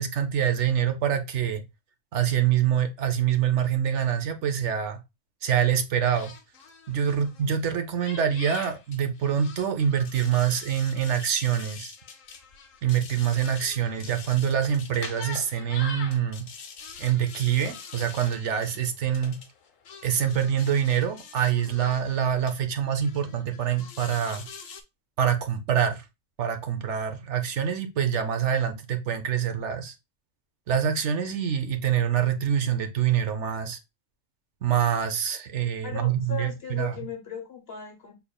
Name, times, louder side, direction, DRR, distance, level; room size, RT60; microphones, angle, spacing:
voice 1, 0.0-1.6 2.1-5.0 5.4-6.3 6.9-11.9 12.8-16.5 17.0-19.4 20.0-24.4 25.2-26.0 26.4-29.9 30.7-33.8 34.6-37.0, right 9 dB, 65° right, 0.9 m, -25 dB
sound 1, 6.1-7.7 8.0-22.5 23.0-24.8, left 5 dB, 80° left, 1.1 m, -44 dB
voice 2, 35.8-38.1, left 7 dB, 50° left, 1.2 m, -37 dB
5.5 x 3.5 x 2.2 m
omnidirectional pair, 1.3 m